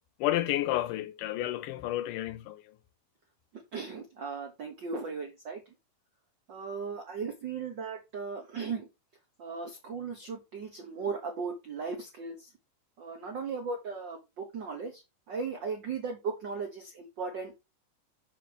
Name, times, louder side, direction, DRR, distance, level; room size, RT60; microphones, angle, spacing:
voice 1, 0.2-2.6, left 14 dB, 85° left, 2.2 m, -31 dB
voice 2, 3.7-5.6 6.5-8.9 9.4-12.5 13.0-15.0 15.3-17.6, right 5 dB, 90° right, 1.0 m, -37 dB
6.6 x 5.7 x 3.3 m
omnidirectional pair, 3.8 m